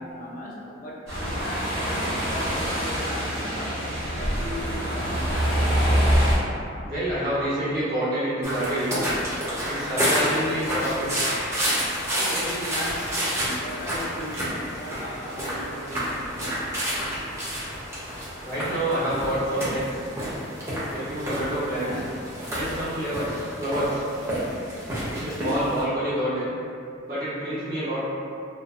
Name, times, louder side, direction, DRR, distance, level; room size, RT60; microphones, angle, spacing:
voice 1, 0.0-5.6 12.2-16.1, left 1 dB, 40° left, -4 dB, 0.4 m, -37 dB
sound 1, 1.1-6.4, equal, 80° right, 0.9 m, -25 dB
voice 2, 6.8-9.0 9.7-11.2 18.4-20.0 20.9-22.0 22.5-24.0 25.1-26.5 27.1-28.0, right 1 dB, 45° right, -11 dB, 0.9 m, -27 dB
sound 2, 8.4-25.8, equal, 15° right, 0.5 m, -29 dB
2.5 x 2.1 x 2.4 m, 2.4 s
head